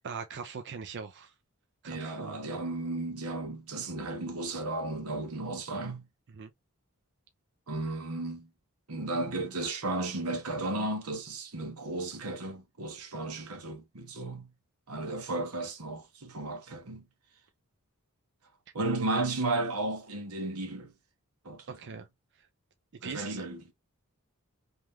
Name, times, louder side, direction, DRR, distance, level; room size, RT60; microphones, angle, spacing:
voice 1, 0.0-1.3 1.8-2.4 6.4-6.5 21.7-22.1 23.0-23.4, right 5 dB, 55° right, 0.5 m, -41 dB
voice 2, 1.9-6.1 7.7-8.5 8.9-14.5 14.9-17.1 18.7-20.9 21.4-22.0 23.0-23.7, right 2 dB, 90° right, 1.2 m, -34 dB
3.3 x 3.0 x 3.3 m
head